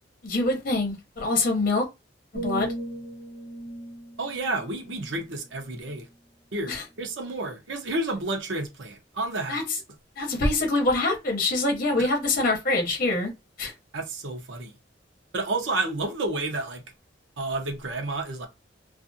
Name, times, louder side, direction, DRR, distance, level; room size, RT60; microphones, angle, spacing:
voice 1, 0.2-1.8 2.3-2.7 6.7-6.8 9.5-9.6 10.2-13.3 13.6-13.7, left 2 dB, 50° left, 0.8 m, -25 dB
sound 1, 2.3-6.2 6.7-7.0, right 1 dB, 60° right, 1.2 m, -38 dB
voice 2, 4.2-6.0 6.5-9.6 12.0-12.1 13.9-14.7 15.3-16.8 17.4-18.5, right 2 dB, 85° right, 0.7 m, -30 dB
2.4 x 2.4 x 2.6 m
head